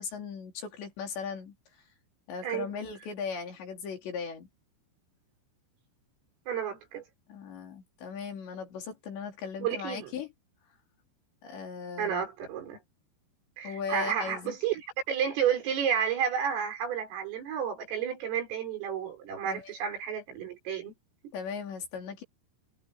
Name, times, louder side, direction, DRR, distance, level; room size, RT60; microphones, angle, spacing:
voice 1, 0.0-1.5 2.3-4.5 7.3-10.3 11.4-12.3 13.6-14.6 19.5-19.7 21.3-22.2, left 6 dB, 60° left, 6.1 m, -38 dB
voice 2, 6.5-7.0 9.6-10.1 12.0-12.8 13.6-20.9 21.2-21.3, right 8 dB, 75° right, 8.2 m, -31 dB
omnidirectional pair, 5.9 m